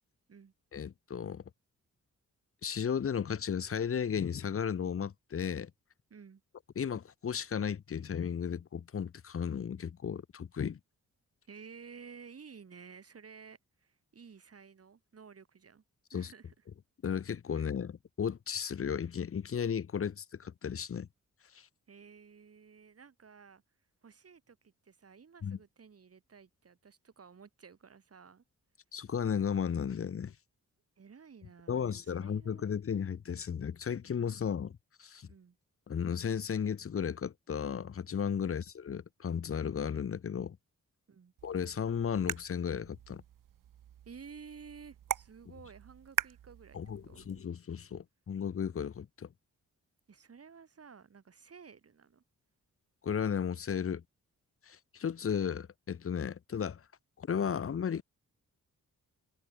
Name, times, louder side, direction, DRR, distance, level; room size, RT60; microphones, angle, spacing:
voice 1, 0.7-1.4 2.6-5.7 6.8-10.8 16.1-16.3 17.0-21.1 21.5-21.7 25.4-25.6 28.9-30.3 31.7-35.3 35.9-40.6 41.4-43.2 46.7-49.3 53.0-54.0 54.7-56.8 57.2-58.0, left 7 dB, 45° left, 0.9 m, -34 dB
voice 2, 6.1-6.4 11.5-15.8 16.1-16.5 17.5-17.7 21.9-23.6 24.0-28.4 31.0-32.8 35.3-35.6 41.1-41.3 44.1-47.2 50.1-52.2, right 6 dB, 50° right, 3.7 m, -53 dB
sound 1, 41.4-47.4, right 11 dB, 90° right, 1.0 m, -42 dB
wide cardioid pair, 125°, 32 cm